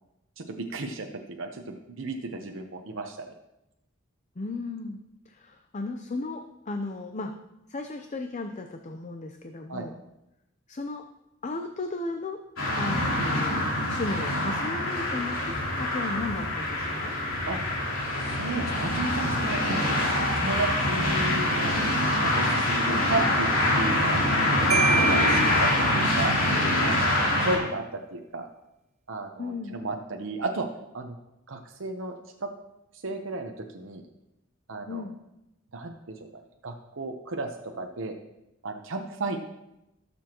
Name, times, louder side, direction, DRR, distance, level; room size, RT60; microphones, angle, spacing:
voice 1, 0.4-3.3 4.7-4.9 9.7-9.9 17.5-17.6 18.2-21.8 22.2-23.5 23.7-24.2 24.6-26.4 26.8-27.8 28.1-28.5 29.1-30.7 30.9-31.2 31.5-32.5 33.0-34.0 34.7-35.0 35.7-38.2 38.6-39.4, right 2 dB, 70° right, 3 dB, 0.9 m, -33 dB
voice 2, 4.4-5.0 5.3-7.3 7.7-10.0 10.7-11.0 11.4-12.4 12.8-17.1 22.8-23.0 29.4-29.8 34.9-35.2, left 3 dB, 35° left, 5 dB, 0.6 m, -35 dB
sound 1, 12.6-27.6, left 1 dB, 80° left, 3.3 m, -25 dB
Marimba xylophone, 24.7-26.4, right 5 dB, 35° right, 0.6 m, -28 dB
18.5 x 7.0 x 3.0 m, 0.89 s
head